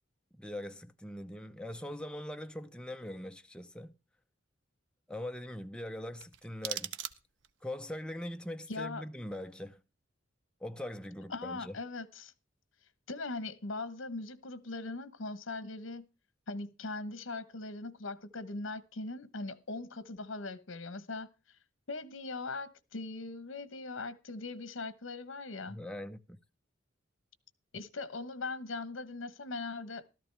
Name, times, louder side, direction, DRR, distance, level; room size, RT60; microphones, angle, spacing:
voice 1, 0.3-3.9 5.1-6.9 7.6-9.8 10.6-11.8 25.7-26.4, left 1 dB, 5° left, 0.7 m, -42 dB
sound 1, 6.2-7.6, right 10 dB, 65° right, 0.8 m, -41 dB
voice 2, 8.7-9.0 11.3-12.3 13.1-16.1 16.5-21.3 21.9-25.8 27.7-30.1, left 3 dB, 75° left, 1.1 m, -40 dB
14.0 x 13.0 x 3.4 m
head